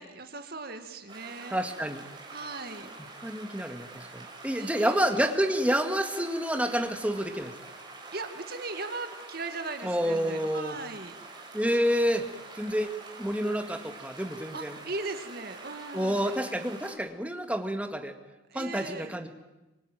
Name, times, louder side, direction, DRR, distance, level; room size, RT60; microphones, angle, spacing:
voice 1, 0.0-1.6 2.3-2.9 4.5-5.0 8.1-11.2 14.5-16.4 18.5-19.2, right 3 dB, 50° right, 7 dB, 2.1 m, -38 dB
sound 1, 1.1-16.9, right 3 dB, 20° right, 5.4 m, -46 dB
voice 2, 1.5-2.1 3.2-7.5 9.8-10.8 11.5-12.3 12.6-12.9 13.2-14.7 15.9-18.2 18.5-19.3, equal, 5° right, 6 dB, 1.9 m, -29 dB
25.5 x 25.0 x 9.3 m, 1.0 s
head